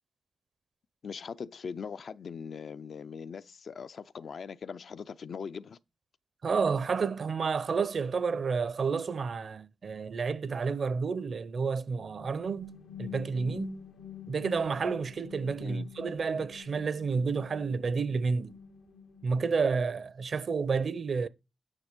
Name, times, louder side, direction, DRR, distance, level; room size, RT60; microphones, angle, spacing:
voice 1, 1.0-5.8 15.6-15.9, left 6 dB, 60° left, 0.4 m, -41 dB
voice 2, 6.4-13.9 14.3-18.5 19.2-21.3, right 5 dB, 50° right, 0.6 m, -30 dB
sound 1, 12.0-19.8, left 9 dB, 85° left, 0.9 m, -48 dB
9.8 x 5.8 x 5.0 m
wide cardioid pair, 125°, 0 cm